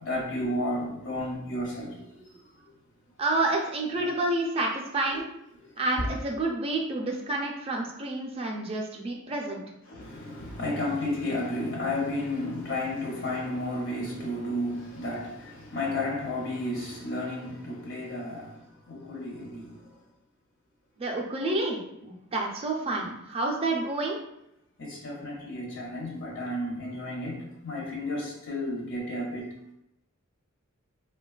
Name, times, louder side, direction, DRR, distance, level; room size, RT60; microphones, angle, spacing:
voice 1, 0.0-2.3 5.1-5.2 9.9-18.6 18.9-19.8 24.8-29.7, left 1 dB, 60° left, 0.7 m, -32 dB
voice 2, 3.2-5.3 5.8-9.6 21.0-24.2, right 2 dB, 25° right, 0.4 m, -29 dB
3.1 x 2.2 x 2.3 m
head